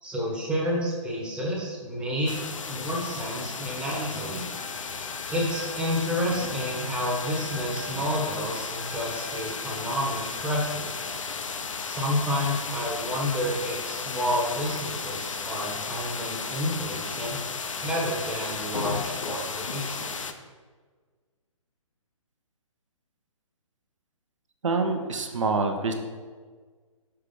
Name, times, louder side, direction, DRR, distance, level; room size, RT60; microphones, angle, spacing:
voice 1, 0.0-2.3 2.7-4.5 5.3-11.1 11.8-17.4 17.8-20.2, equal, 5° right, -4 dB, 0.9 m, -30 dB
sound 1, 2.3-20.3, left 5 dB, 70° left, 0.5 m, -34 dB
Trumpet, 4.5-11.2, left 1 dB, 45° left, 0.8 m, -45 dB
voice 2, 24.6-25.9, right 3 dB, 65° right, 5 dB, 0.8 m, -26 dB
5.7 x 3.3 x 5.1 m, 1.5 s
figure-of-eight pair, 130°, 17 cm